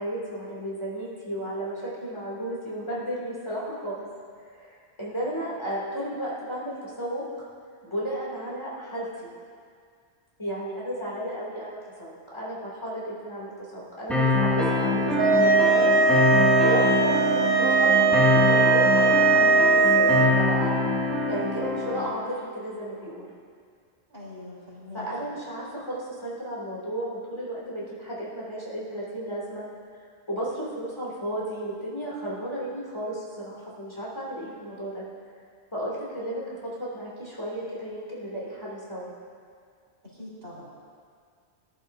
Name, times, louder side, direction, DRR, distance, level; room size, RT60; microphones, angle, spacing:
voice 1, 0.0-4.0 4.5-7.2 7.8-9.3 10.4-20.8 21.3-23.3 24.9-29.6 30.3-35.0 35.7-39.1, right 1 dB, 25° left, -7 dB, 2.8 m, -33 dB
piano-loop in C-major, 14.1-22.1, left 2 dB, ahead, 2.2 m, -24 dB
sound 1, 15.2-20.3, right 4 dB, 30° right, 0.5 m, -20 dB
voice 2, 24.1-25.3 40.0-40.6, left 2 dB, 65° right, -8 dB, 4.1 m, -43 dB
19.0 x 11.5 x 2.7 m, 2.1 s
omnidirectional pair, 1.1 m